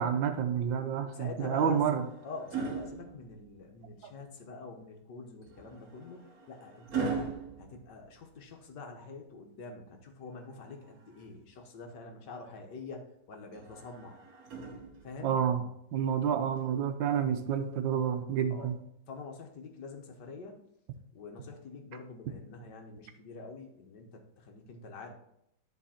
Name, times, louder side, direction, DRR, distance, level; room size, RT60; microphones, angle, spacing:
voice 1, 0.0-2.0 15.2-15.6 15.9-18.7, right 8 dB, 75° right, 7 dB, 1.5 m, -29 dB
voice 2, 1.0-1.8 2.2-14.2 15.0-15.4 18.5-18.7 19.1-20.6 21.1-25.1, left 4 dB, 65° left, 3 dB, 1.6 m, -46 dB
sound 1, 1.4-3.8 5.4-8.6 10.4-11.5 13.5-15.4 16.6-16.8, right 5 dB, 55° right, 1.4 m, -40 dB
10.0 x 4.1 x 4.3 m, 0.77 s
omnidirectional pair, 2.1 m